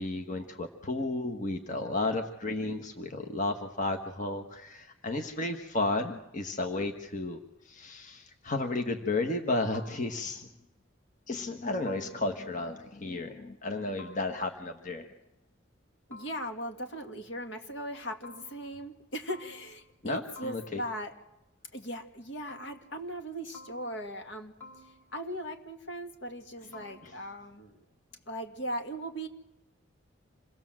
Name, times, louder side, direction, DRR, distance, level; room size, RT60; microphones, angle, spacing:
voice 1, 0.0-7.4 7.6-10.5 11.3-15.1 20.0-20.8 27.0-27.1, left 2 dB, 40° left, 5 dB, 1.4 m, -33 dB
sound 1, 9.7-10.5 11.9-12.6 14.0-14.8 16.1-16.9 18.2-19.0 19.3-20.1 20.4-21.2 22.5-23.3 23.5-24.3 24.6-25.4 26.7-27.4, left 2 dB, 15° left, 3.0 m, -53 dB
voice 2, 16.1-21.1 21.7-24.5 25.1-27.8 28.3-29.3, equal, 65° left, 5 dB, 2.2 m, -38 dB
27.0 x 19.0 x 7.6 m, 0.91 s
head